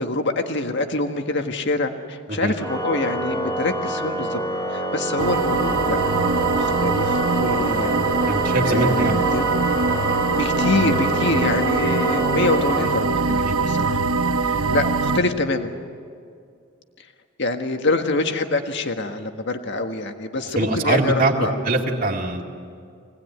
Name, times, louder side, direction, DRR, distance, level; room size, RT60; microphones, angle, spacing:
voice 1, 0.0-4.4 4.7-6.0 6.4-8.0 8.6-9.5 10.3-14.0 14.4-15.7 17.0-17.1 17.4-21.5, left 2 dB, 55° left, 5 dB, 1.6 m, -25 dB
Organ, 2.6-13.5, equal, 15° left, 2.8 m, -28 dB
sound 1, 5.2-15.2, right 4 dB, 80° right, 0.9 m, -22 dB
voice 2, 8.3-9.1 11.3-11.4 13.4-13.8 20.6-21.3 21.6-22.4, right 2 dB, 40° right, -1 dB, 2.2 m, -23 dB
25.0 x 19.0 x 9.4 m, 2.3 s
head